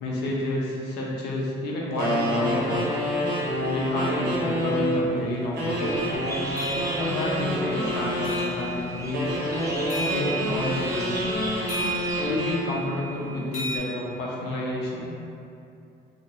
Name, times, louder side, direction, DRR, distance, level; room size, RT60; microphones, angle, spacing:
voice 1, 0.0-3.0 3.7-6.2 7.0-9.4 10.1-11.3 12.2-15.1, left 1 dB, 80° left, -4 dB, 0.6 m, -30 dB
sound 1, 2.0-5.0 5.5-8.5 9.1-12.6, equal, 75° right, 0.7 m, -27 dB
sound 2, 5.7-12.3, right 1 dB, 20° right, 0.3 m, -38 dB
sound 3, 5.8-13.8, right 3 dB, 40° left, 0.8 m, -36 dB
2.6 x 2.0 x 3.0 m, 2.6 s
cardioid pair, 110°, 17 cm